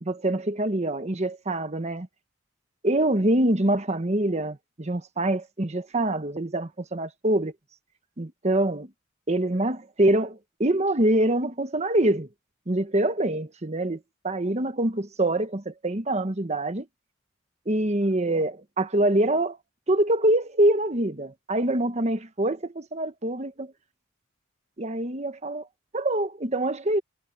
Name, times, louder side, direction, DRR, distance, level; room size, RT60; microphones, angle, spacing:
voice 1, 0.0-2.1 2.8-7.5 8.2-8.9 9.3-12.3 12.7-16.9 17.7-19.6 19.9-23.7 24.8-25.7 25.9-27.0, right 1 dB, 35° right, 1.2 m, -25 dB
head